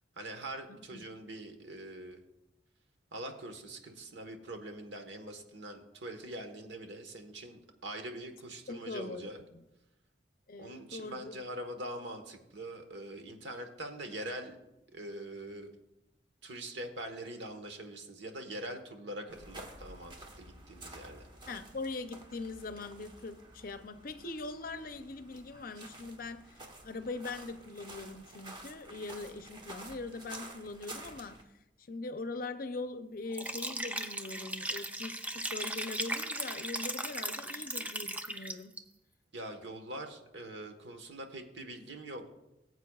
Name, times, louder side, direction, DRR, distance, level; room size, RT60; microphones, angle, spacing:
voice 1, 0.2-2.2 3.1-9.4 10.6-14.6 14.9-15.7 16.4-21.2 39.3-42.3, right 1 dB, 80° right, 5 dB, 1.3 m, -43 dB
voice 2, 0.7-1.0 8.7-9.6 10.5-11.3 21.5-26.5 26.8-31.4 31.8-38.7, left 3 dB, 50° left, 10 dB, 0.6 m, -42 dB
sound 1, 19.3-31.4, right 1 dB, 25° right, 1.1 m, -50 dB
Liquid, 33.3-38.8, right 1 dB, 10° right, 0.4 m, -37 dB
19.0 x 8.1 x 2.4 m, 0.92 s
head